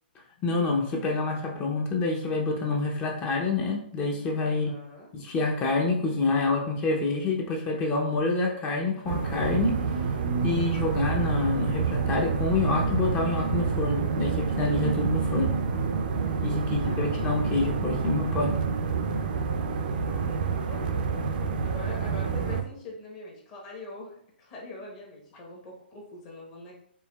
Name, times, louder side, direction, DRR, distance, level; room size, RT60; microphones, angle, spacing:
voice 1, 0.4-4.7 5.1-9.8 10.4-15.5 16.4-18.6, left 3 dB, 20° left, 1 dB, 0.5 m, -27 dB
voice 2, 4.5-5.1 16.4-17.1 20.1-21.4 21.6-26.7, left 2 dB, 35° left, -2 dB, 0.9 m, -43 dB
sound 1, 9.0-22.6, right 5 dB, 55° right, 0.5 m, -28 dB
4.5 x 3.4 x 2.2 m, 0.65 s
hypercardioid pair, 155°, 6 cm